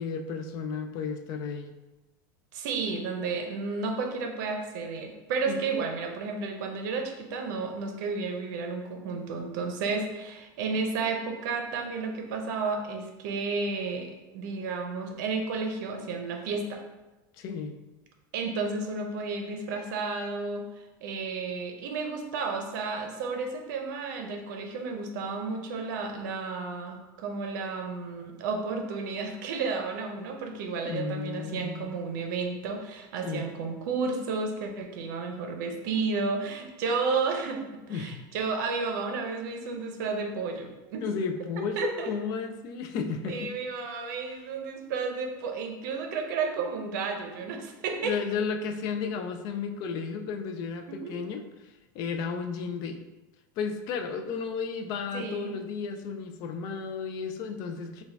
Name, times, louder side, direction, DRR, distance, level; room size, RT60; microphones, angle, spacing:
voice 1, 0.0-1.7 5.5-5.9 17.4-17.8 30.8-31.9 33.2-33.5 37.9-38.2 41.0-43.5 48.0-53.0 53.6-58.0, left 5 dB, 35° left, 7 dB, 0.3 m, -33 dB
voice 2, 2.5-16.8 18.3-41.0 41.8-42.1 43.3-48.1 50.9-51.1 55.1-55.5, right 4 dB, 60° right, 4 dB, 0.6 m, -32 dB
4.6 x 2.3 x 3.3 m, 1.1 s
supercardioid pair, 165°, 11 cm